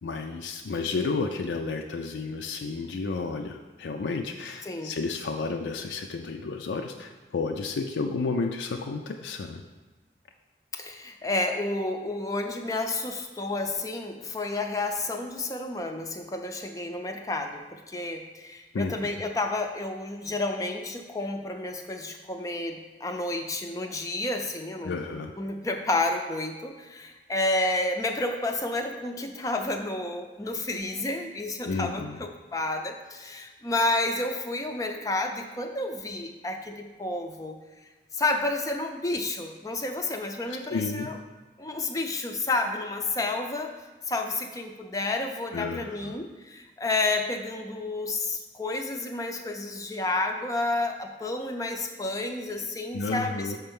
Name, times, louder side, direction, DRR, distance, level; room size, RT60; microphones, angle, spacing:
voice 1, 0.0-9.6 18.7-18.9 24.8-25.4 31.7-32.2 40.5-41.1 45.5-46.2 52.9-53.6, left 4 dB, 90° left, 3 dB, 0.4 m, -31 dB
voice 2, 10.7-25.0 25.4-37.6 38.1-41.2 41.6-53.6, left 2 dB, 20° left, 4 dB, 0.4 m, -30 dB
6.3 x 4.4 x 5.3 m, 1.2 s
head